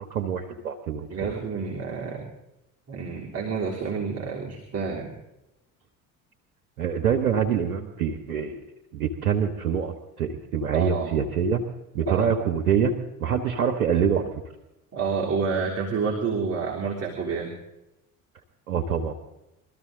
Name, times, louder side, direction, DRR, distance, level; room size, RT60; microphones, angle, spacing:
voice 1, 0.0-1.1 6.8-8.6 8.9-11.6 11.9-12.9 13.2-14.3 18.7-19.1, right 7 dB, 85° right, 4 dB, 1.2 m, -25 dB
voice 2, 1.1-2.3 2.9-5.1 10.7-11.3 12.1-12.3 14.9-17.5, right 5 dB, 35° right, -2 dB, 3.5 m, -29 dB
23.0 x 13.5 x 3.9 m, 0.91 s
hypercardioid pair, 60°, 44 cm